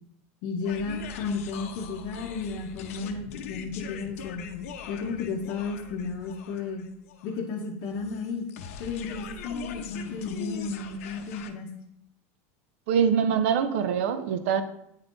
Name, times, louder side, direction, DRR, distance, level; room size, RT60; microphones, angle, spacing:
voice 1, 0.4-4.5 4.9-6.9 7.2-8.5 8.8-11.7, left 4 dB, 45° left, -1 dB, 0.7 m, -33 dB
sound 1, 0.6-11.5, left 7 dB, 85° left, 0.7 m, -42 dB
voice 2, 12.9-14.6, right 7 dB, 65° right, 11 dB, 0.5 m, -24 dB
8.9 x 3.7 x 3.8 m, 0.77 s
supercardioid pair, 180°, 8 cm